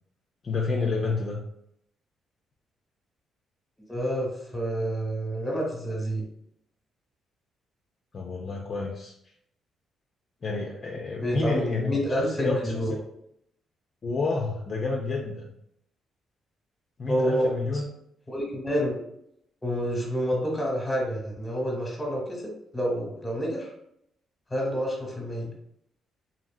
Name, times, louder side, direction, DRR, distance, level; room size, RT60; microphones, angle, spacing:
voice 1, 0.4-1.4 8.1-9.1 10.4-12.0 12.3-13.0 14.0-15.5 17.0-17.8, left 3 dB, 45° left, 0 dB, 0.4 m, -29 dB
voice 2, 3.9-6.2 11.2-12.9 17.1-17.8 18.3-19.0 19.6-23.7 24.5-25.5, equal, 15° left, -1 dB, 1.0 m, -28 dB
2.7 x 2.6 x 2.3 m, 0.74 s
cardioid pair, 90°, 0 cm